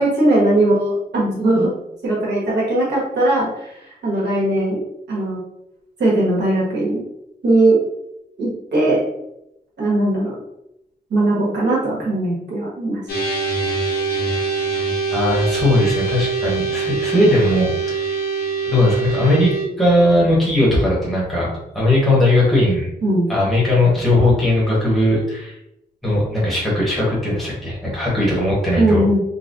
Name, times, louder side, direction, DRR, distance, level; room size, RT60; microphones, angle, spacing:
voice 1, 0.0-1.7 2.0-3.7 4.0-4.8 5.1-5.4 6.0-7.0 7.4-7.8 8.4-9.0 9.8-10.3 11.1-13.0 23.0-23.3 28.8-29.2, right 1 dB, 90° right, -6 dB, 1.4 m, -18 dB
sound 1, 13.1-19.7, right 4 dB, 65° left, 0.9 m, -23 dB
voice 2, 15.1-18.1 18.6-19.5 19.8-21.5 21.7-22.9 23.3-25.6 26.0-29.0, left 1 dB, ahead, -7 dB, 1.2 m, -18 dB
3.9 x 2.2 x 2.6 m, 0.83 s
wide cardioid pair, 155°, 17 cm